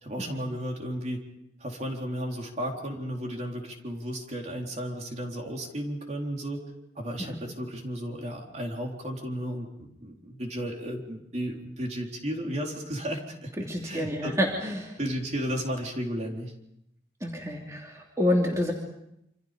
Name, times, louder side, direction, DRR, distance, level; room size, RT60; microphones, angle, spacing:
voice 1, 0.0-1.2 1.6-6.6 7.0-13.5 13.8-14.3 15.0-16.5, equal, 40° right, 1 dB, 3.9 m, -34 dB
voice 2, 13.6-15.0 17.2-18.7, left 1 dB, 20° right, -1 dB, 3.1 m, -28 dB
28.0 x 26.5 x 5.3 m, 0.80 s
head